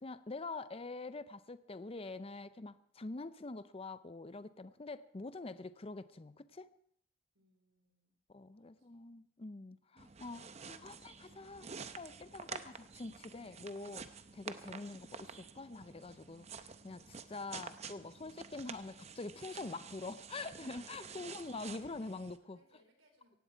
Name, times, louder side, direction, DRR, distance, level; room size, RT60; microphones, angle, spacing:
voice 1, 0.0-6.7 8.3-22.6, left 3 dB, 30° left, 0.5 m, -45 dB
voice 2, 7.3-8.1 8.6-9.0 21.0-22.0 22.5-23.4, right 1 dB, 70° right, 4.3 m, -70 dB
sound 1, 10.0-22.4, right 5 dB, 30° right, 0.7 m, -50 dB
17.5 x 15.5 x 4.5 m
head